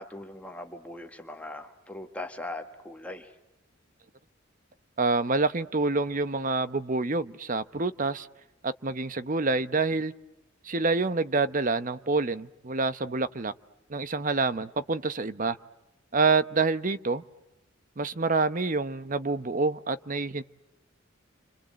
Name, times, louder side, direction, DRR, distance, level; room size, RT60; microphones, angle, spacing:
voice 1, 0.0-3.3, left 2 dB, 5° left, 4 dB, 1.5 m, -40 dB
voice 2, 5.0-8.3 8.6-10.1 10.6-13.5 13.9-15.6 16.1-17.2 18.0-20.4, right 3 dB, 40° right, 13 dB, 0.9 m, -27 dB
29.5 x 25.5 x 7.6 m, 0.94 s
head